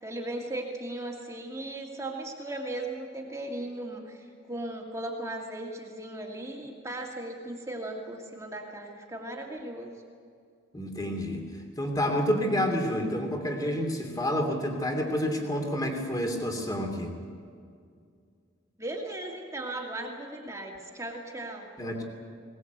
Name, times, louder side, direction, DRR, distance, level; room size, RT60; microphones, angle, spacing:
voice 1, 0.0-9.9 18.8-21.7, right 1 dB, 15° right, -1 dB, 2.2 m, -37 dB
voice 2, 10.7-17.1 21.8-22.0, equal, 20° left, 3 dB, 2.8 m, -29 dB
20.5 x 19.5 x 8.1 m, 2.2 s
head